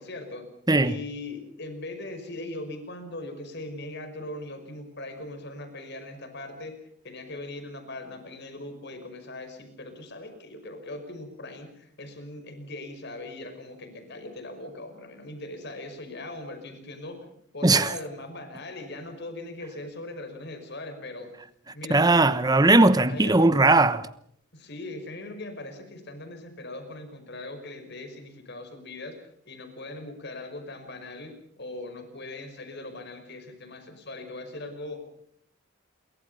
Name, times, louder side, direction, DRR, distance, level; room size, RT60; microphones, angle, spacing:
voice 1, 0.0-0.5 0.8-6.8 7.0-21.4 21.7-22.1 23.1-23.5 24.5-35.0, left 2 dB, 50° left, 5.5 m, -40 dB
voice 2, 0.7-1.0 17.6-17.9 21.9-24.1, right 2 dB, 15° right, 1.0 m, -19 dB
28.5 x 24.0 x 5.6 m
head